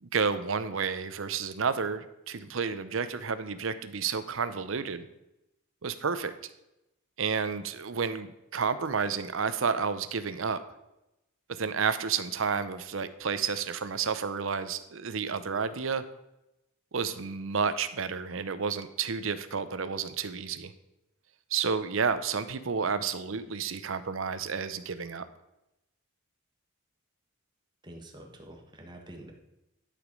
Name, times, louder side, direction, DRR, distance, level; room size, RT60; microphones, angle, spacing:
voice 1, 0.0-5.1 5.8-6.3 7.2-10.6 11.6-16.0 16.9-20.7 21.5-25.3, right 5 dB, 65° right, 12 dB, 0.7 m, -31 dB
voice 2, 27.8-29.3, right 1 dB, 20° right, 2 dB, 1.4 m, -47 dB
11.5 x 5.1 x 5.3 m, 0.90 s
head